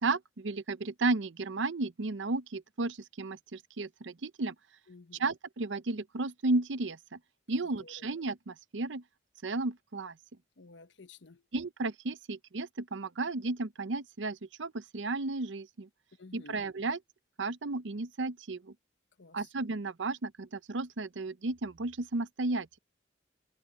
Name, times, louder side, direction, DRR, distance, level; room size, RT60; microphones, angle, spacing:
voice 1, 0.0-4.5 5.2-7.2 7.5-9.0 9.4-10.1 11.5-15.9 16.3-17.0 17.4-18.6 19.3-22.8, right 3 dB, 85° right, 0.8 m, -33 dB
voice 2, 4.9-5.3 7.8-8.0 10.6-11.4 16.2-16.6 19.2-19.5, left 3 dB, 80° left, 1.0 m, -53 dB
head